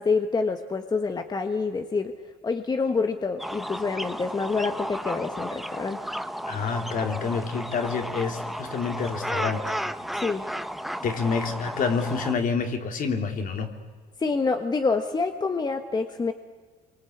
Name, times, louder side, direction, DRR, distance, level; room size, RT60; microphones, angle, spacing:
voice 1, 0.0-2.1 2.4-6.0 10.1-10.5 14.2-16.3, left 4 dB, 25° left, 6 dB, 1.4 m, -27 dB
sound 1, 3.4-12.3, equal, ahead, 0.9 m, -33 dB
voice 2, 6.5-9.7 11.0-13.7, left 5 dB, 55° left, 5 dB, 3.2 m, -28 dB
26.5 x 24.0 x 8.6 m, 1.5 s
cardioid pair, 110°, 17 cm